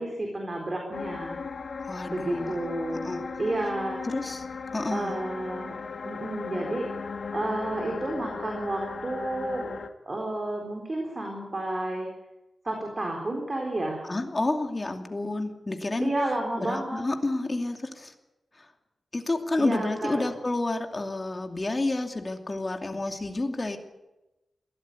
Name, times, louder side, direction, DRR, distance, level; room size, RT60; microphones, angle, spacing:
voice 1, 0.0-1.4 2.1-4.0 4.9-5.7 6.1-6.9 7.3-9.7 10.1-12.1 12.6-14.0 16.0-17.0 19.6-20.1, right 1 dB, 30° right, 1 dB, 4.1 m, -31 dB
sound 1, 0.9-9.9, left 4 dB, 65° left, 1.8 m, -37 dB
voice 2, 1.9-2.6 2.9-3.2 4.0-4.5 4.7-5.2 14.0-16.2 16.6-18.1 18.5-18.7 19.1-23.8, left 2 dB, 25° left, 4 dB, 2.6 m, -30 dB
22.0 x 16.5 x 9.6 m, 0.99 s
wide cardioid pair, 135°, 0 cm